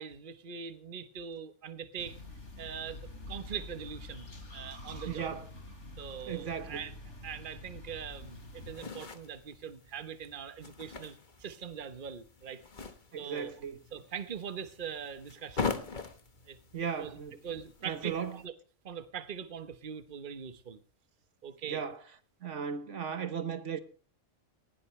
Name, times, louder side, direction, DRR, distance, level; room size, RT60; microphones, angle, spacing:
voice 1, 0.0-2.2 2.6-5.4 6.0-6.9 7.2-12.6 13.2-13.5 13.9-15.7 16.5-17.2 17.4-18.5 18.8-20.8 21.4-21.8, right 7 dB, 40° right, 1.2 m, -42 dB
sound 1, 2.0-8.7, left 2 dB, 60° left, 3.3 m, -47 dB
voice 2, 5.1-5.5 6.3-6.8 13.1-13.8 16.7-17.4 17.8-18.4 21.7-22.0 22.4-23.8, right 7 dB, 65° right, 1.5 m, -36 dB
sound 2, 8.1-18.5, left 5 dB, 40° left, 1.4 m, -42 dB
19.0 x 16.0 x 3.2 m
omnidirectional pair, 1.3 m